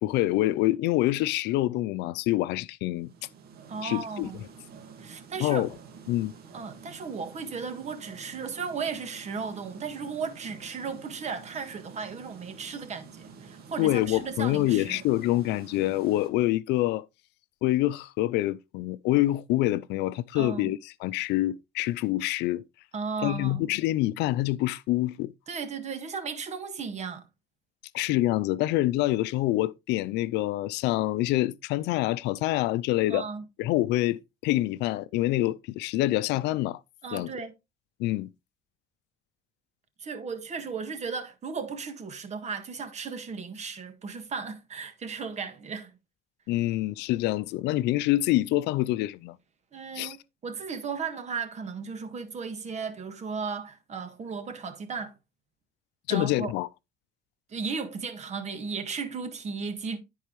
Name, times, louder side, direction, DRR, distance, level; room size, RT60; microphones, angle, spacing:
voice 1, 0.0-3.1 3.8-4.3 5.4-5.7 6.1-6.3 13.8-17.0 17.6-22.6 23.2-25.3 27.9-33.3 33.6-36.8 37.1-37.3 38.0-38.3 46.5-49.4 49.9-50.2 56.1-56.7, left 16 dB, 90° left, 0.5 m, -26 dB
sound 1, 2.9-16.3, right 5 dB, 70° right, 1.9 m, -49 dB
voice 2, 3.7-4.4 5.0-5.7 6.5-15.0 20.3-20.7 22.9-23.6 25.5-27.2 33.1-33.4 37.0-37.5 40.0-45.9 49.7-50.2 50.4-55.1 56.1-56.5 57.5-60.0, right 5 dB, 40° right, 1.7 m, -35 dB
13.5 x 4.6 x 3.1 m
cardioid pair, 110°, 17 cm